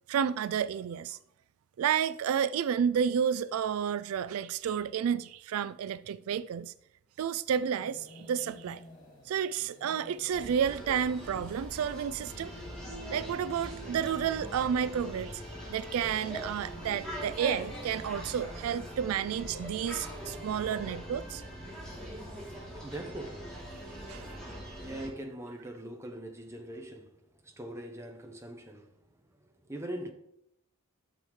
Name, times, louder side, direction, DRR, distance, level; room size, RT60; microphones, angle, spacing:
voice 1, 0.1-1.2 1.8-6.7 7.2-8.8 9.3-12.5 13.1-21.4 23.7-24.4, right 8 dB, 75° right, 0.3 m, -31 dB
sound 1, 7.5-18.1, left 1 dB, 35° left, 2.6 m, -57 dB
sound 2, 10.3-25.1, equal, 5° left, 2.9 m, -42 dB
sound 3, 12.2-24.5, right 1 dB, 40° right, 2.9 m, -50 dB
voice 2, 22.5-23.9 24.7-27.2 27.4-29.0 29.4-30.1, right 1 dB, 10° right, 1.0 m, -42 dB
12.0 x 7.0 x 3.2 m
head